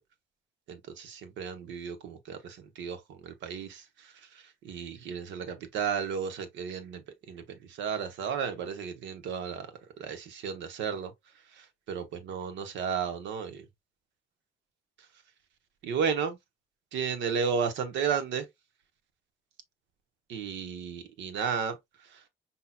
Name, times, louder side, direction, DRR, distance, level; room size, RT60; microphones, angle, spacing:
voice 1, 0.7-9.7 10.0-11.1 11.5-13.6 15.8-16.4 16.9-18.5 20.3-22.2, right 6 dB, 80° right, 0.9 m, -34 dB
5.4 x 2.8 x 2.3 m
supercardioid pair, 60°, 19 cm